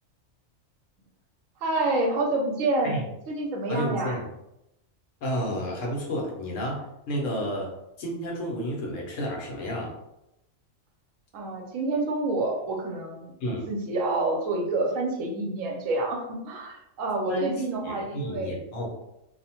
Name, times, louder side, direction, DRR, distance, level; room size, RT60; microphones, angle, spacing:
voice 1, 1.6-3.0 3.3-4.2 11.3-18.6, right 2 dB, 80° right, 1 dB, 1.0 m, -28 dB
voice 2, 3.7-4.2 5.2-7.7 8.0-9.9 13.4-13.7 17.3-18.9, equal, 75° left, -1 dB, 1.1 m, -31 dB
2.7 x 2.1 x 2.8 m, 0.88 s
omnidirectional pair, 1.4 m